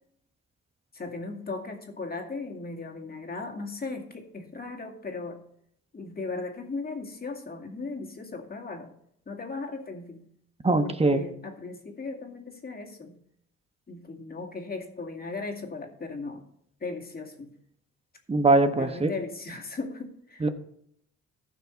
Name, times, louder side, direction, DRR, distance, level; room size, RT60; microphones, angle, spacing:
voice 1, 0.9-5.4 5.9-8.9 9.3-10.2 10.8-13.2 13.9-16.4 16.8-17.5 18.8-20.5, left 3 dB, 30° left, 2 dB, 2.3 m, -37 dB
voice 2, 10.6-11.2 18.3-19.1 20.4-20.5, right 2 dB, 20° right, 9 dB, 1.1 m, -22 dB
14.5 x 6.0 x 4.5 m, 0.71 s
cardioid pair, 90°, 30 cm